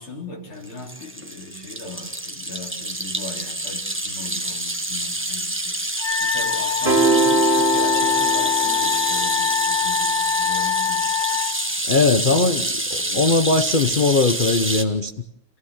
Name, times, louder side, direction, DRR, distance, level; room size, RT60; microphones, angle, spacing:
voice 1, 0.0-11.2 12.2-12.4 13.0-13.3, left 2 dB, 85° left, 4.7 m, -38 dB
sound 1, 0.6-14.8, right 1 dB, 10° right, 1.0 m, -27 dB
Wind instrument woodwind instrument, 6.0-11.5, left 9 dB, 15° left, 1.6 m, -23 dB
sound 2, 6.9-9.3, right 4 dB, 30° right, 2.7 m, -22 dB
voice 2, 11.9-15.1, left 3 dB, 55° left, 0.5 m, -20 dB
28.5 x 15.5 x 7.3 m
omnidirectional pair, 2.2 m